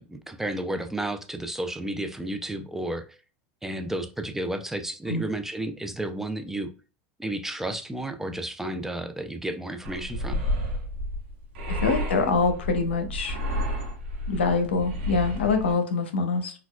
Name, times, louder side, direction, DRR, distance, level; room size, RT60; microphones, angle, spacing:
voice 1, 0.0-3.0 3.6-6.7 7.2-10.4, right 1 dB, 5° right, 0.4 m, -32 dB
sound 1, 9.8-15.7, equal, 80° right, 1.0 m, -31 dB
voice 2, 11.8-13.4 14.3-16.5, left 4 dB, 90° left, 0.6 m, -24 dB
4.1 x 2.3 x 2.2 m
hypercardioid pair, 95°, 6 cm